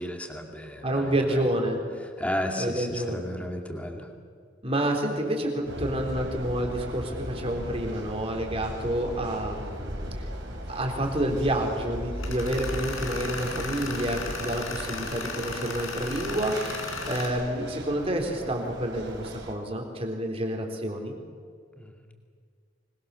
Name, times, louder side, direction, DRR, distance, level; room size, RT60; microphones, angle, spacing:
voice 1, 0.0-1.4 2.0-4.1 21.8-21.9, left 1 dB, 5° left, 3 dB, 2.4 m, -33 dB
voice 2, 0.8-1.8 2.6-3.2 4.6-10.1 10.7-16.6 17.0-21.2, right 1 dB, 30° right, 2 dB, 3.7 m, -29 dB
sound 1, 5.6-19.5, right 1 dB, 60° right, 4.3 m, -38 dB
Tools, 12.2-17.3, left 4 dB, 90° left, 4.8 m, -36 dB
25.5 x 21.0 x 7.0 m, 2.1 s
head